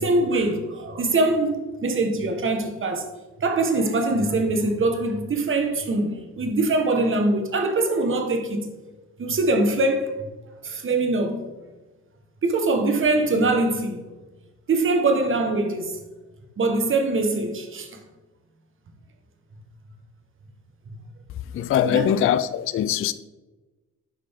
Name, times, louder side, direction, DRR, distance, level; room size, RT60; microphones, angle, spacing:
voice 1, 0.0-3.1 3.4-8.7 9.2-10.1 10.6-11.5 12.4-14.0 14.7-16.0 16.6-18.0 21.8-22.1, right 2 dB, 40° right, 1.4 m, -23 dB
voice 2, 21.5-23.1, left 10 dB, 45° left, 0.4 m, -22 dB
8.6 x 5.4 x 3.6 m
cardioid pair, 90°, 30 cm